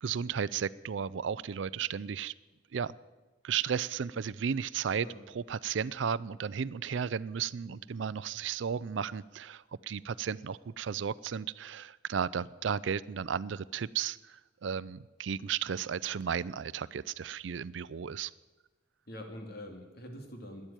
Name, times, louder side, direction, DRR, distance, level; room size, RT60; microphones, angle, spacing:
voice 1, 0.0-2.3 2.7-2.9 3.4-5.1 5.3-18.3, right 7 dB, 75° right, 19 dB, 0.4 m, -34 dB
voice 2, 4.9-5.2 7.7-7.8 19.1-20.7, left 1 dB, 55° left, 4 dB, 2.6 m, -45 dB
12.5 x 10.5 x 9.0 m, 1.2 s
head